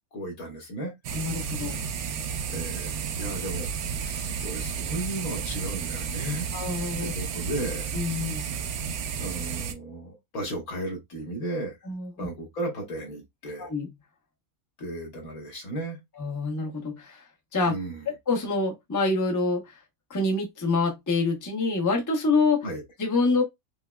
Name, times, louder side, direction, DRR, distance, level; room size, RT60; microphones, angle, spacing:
voice 1, 0.1-0.9 2.5-6.4 7.0-7.9 9.2-11.8 12.2-13.7 14.8-16.0 17.7-18.0 22.6-22.8, right 1 dB, 80° left, 1.7 m, -35 dB
sound 1, 1.0-9.7, right 6 dB, 90° right, 1.1 m, -32 dB
voice 2, 1.1-1.8 6.5-7.1 7.9-8.5 11.9-12.1 13.6-13.9 16.2-17.2 17.5-17.7 18.3-19.8 20.1-22.7 23.0-23.4, left 3 dB, 15° left, 0.7 m, -26 dB
5.4 x 2.0 x 2.2 m
omnidirectional pair, 1.5 m